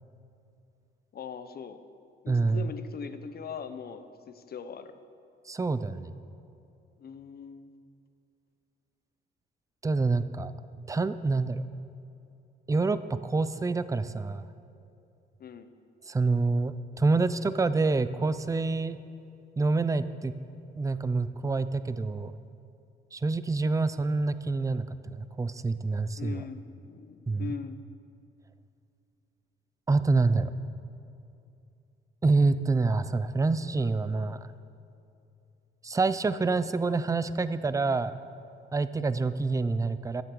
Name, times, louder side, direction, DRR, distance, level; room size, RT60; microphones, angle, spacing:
voice 1, 1.1-1.8 2.2-5.0 7.0-7.7 15.4-15.7 26.2-27.8, left 6 dB, 50° left, 10 dB, 0.8 m, -41 dB
voice 2, 2.3-2.7 5.5-6.1 9.8-10.5 10.9-11.6 12.7-14.4 16.1-19.0 19.6-20.3 20.8-22.3 23.1-26.4 27.3-27.5 29.9-30.5 32.2-34.5 35.8-38.1 38.7-40.2, right 3 dB, 15° right, 13 dB, 0.5 m, -27 dB
13.5 x 7.6 x 6.9 m, 2.6 s
cardioid pair, 90°, 20 cm